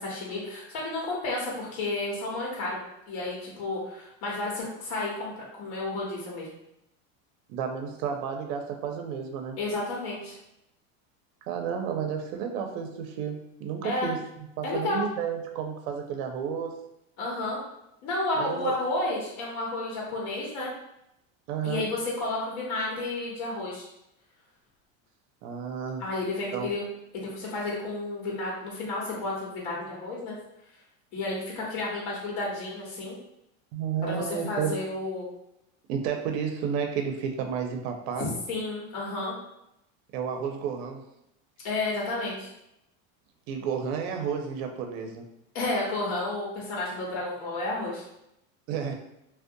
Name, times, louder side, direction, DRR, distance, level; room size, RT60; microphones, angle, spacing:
voice 1, 0.0-6.5 9.6-10.4 13.8-14.1 14.6-15.0 17.2-17.6 18.0-20.7 21.6-23.9 26.0-26.8 27.1-30.4 31.1-33.2 34.0-35.3 38.2-39.4 41.6-42.5 45.5-48.0, left 2 dB, 60° left, -4 dB, 1.1 m, -31 dB
voice 2, 7.5-9.6 11.5-14.2 14.6-16.7 18.4-18.7 21.5-21.9 25.4-26.0 26.5-26.7 33.7-34.7 35.9-38.3 40.1-41.0 43.5-45.2 48.7-48.9, right 7 dB, 70° right, 4 dB, 0.5 m, -31 dB
2.5 x 2.1 x 2.6 m, 0.83 s
supercardioid pair, 125°, 41 cm